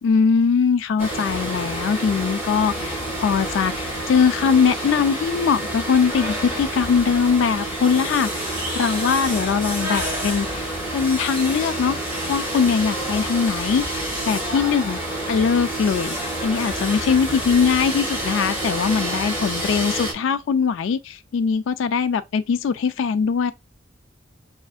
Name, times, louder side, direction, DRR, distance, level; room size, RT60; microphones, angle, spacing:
voice 1, 0.0-12.0 12.3-15.0 15.3-23.5, left 6 dB, 80° left, 0.3 m, -21 dB
sound 1, 1.0-20.1, right 1 dB, 15° right, 1.6 m, -28 dB
6.2 x 2.5 x 2.4 m
head